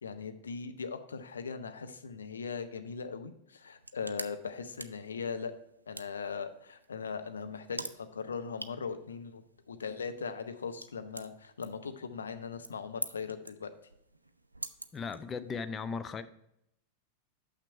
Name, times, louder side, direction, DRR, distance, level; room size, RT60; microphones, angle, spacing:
voice 1, 0.0-5.5 5.9-13.7, left 5 dB, 70° left, 9 dB, 0.6 m, -39 dB
sound 1, 3.6-15.7, right 2 dB, 85° right, 0.4 m, -47 dB
voice 2, 14.9-16.2, left 5 dB, 20° left, 10 dB, 0.5 m, -37 dB
6.7 x 6.0 x 4.4 m, 0.77 s
figure-of-eight pair, 90°, 0 cm